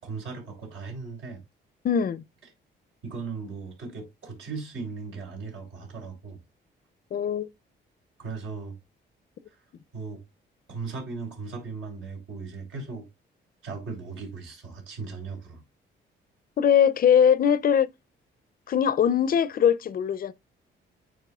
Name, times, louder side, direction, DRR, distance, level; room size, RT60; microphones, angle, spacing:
voice 1, 0.0-1.4 3.0-6.4 8.2-8.8 9.5-9.6 9.9-10.2 10.7-13.1 13.6-15.6, right 4 dB, 75° right, 3.6 m, -37 dB
voice 2, 1.8-2.2 7.1-7.5 16.6-17.9 18.7-20.3, left 8 dB, 45° left, 0.5 m, -21 dB
9.1 x 4.6 x 2.3 m
cardioid pair, 90°, 20 cm